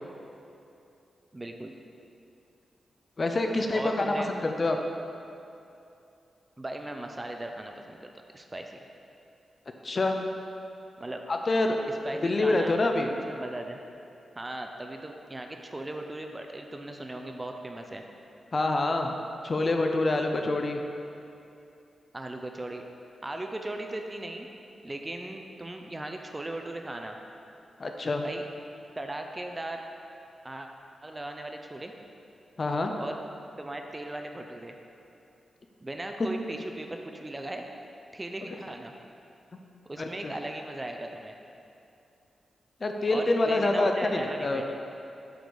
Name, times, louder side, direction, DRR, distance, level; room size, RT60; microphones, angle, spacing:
voice 1, 1.3-1.8 3.7-4.3 6.6-8.8 11.0-11.2 12.0-12.8 13.1-13.8 14.4-18.0 22.1-22.8 23.2-24.5 24.8-27.2 28.2-28.5 29.0-29.8 30.4-30.7 31.0-31.9 33.0-33.2 33.6-34.8 35.8-37.6 38.1-38.9 39.9-41.3 43.1-44.6, right 1 dB, 20° right, 3 dB, 0.5 m, -37 dB
voice 2, 3.2-4.8 9.8-10.2 11.3-11.8 12.2-13.1 18.5-19.1 19.4-20.8 27.8-28.2 32.6-32.9 36.2-36.3 40.0-40.3 42.8-44.6, left 2 dB, 35° left, 4 dB, 0.6 m, -26 dB
7.8 x 4.8 x 5.4 m, 2.7 s
wide cardioid pair, 125°, 0 cm